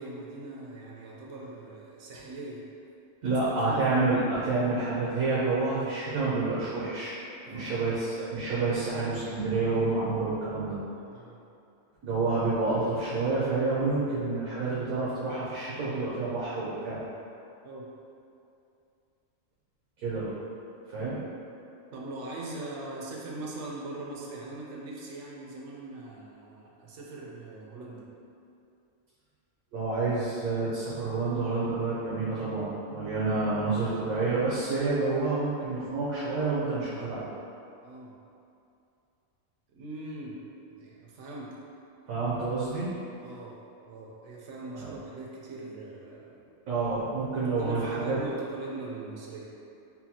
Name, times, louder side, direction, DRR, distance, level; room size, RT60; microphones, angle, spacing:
voice 1, 0.0-2.7 3.2-3.4 3.6-3.8 7.4-7.8 11.1-11.4 17.6-17.9 21.9-28.1 37.8-38.2 39.7-40.4 40.8-41.6 43.2-46.5 47.6-49.5, right 2 dB, 65° right, -4 dB, 0.9 m, -41 dB
voice 2, 3.2-7.2 7.5-10.8 12.0-17.0 20.0-20.3 20.9-21.2 29.7-37.3 42.1-42.9 44.7-44.9 46.7-48.2, right 3 dB, 85° right, -9 dB, 1.2 m, -28 dB
5.6 x 2.3 x 2.8 m, 2.6 s
omnidirectional pair, 1.4 m